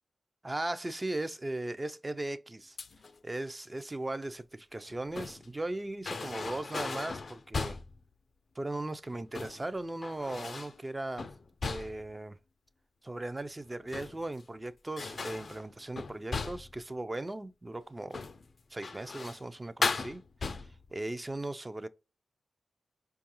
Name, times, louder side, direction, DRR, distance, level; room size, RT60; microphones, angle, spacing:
voice 1, 0.4-2.8 3.2-7.8 8.6-11.3 11.6-12.4 13.0-18.2 18.7-21.9, right 2 dB, 25° right, 0.4 m, -38 dB
sound 1, 2.8-3.2 4.8-5.5 6.0-8.0 9.1-9.6 10.0-10.8 11.2-12.1 13.7-14.4 15.0-16.8 18.1-18.4 18.8-19.5 19.8-20.9, left 4 dB, 60° left, 0.3 m, -37 dB
4.6 x 2.3 x 2.9 m
cardioid pair, 50°, 0 cm